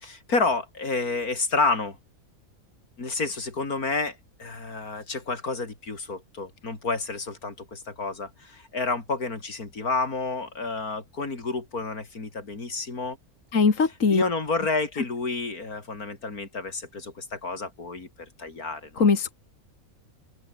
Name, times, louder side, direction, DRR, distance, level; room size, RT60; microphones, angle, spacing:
voice 1, 0.0-2.0 3.0-13.2 14.1-19.1, left 3 dB, 80° left, 4.1 m, -30 dB
voice 2, 13.5-14.2 19.0-19.3, left 5 dB, 60° left, 2.5 m, -20 dB
omnidirectional pair, 1.6 m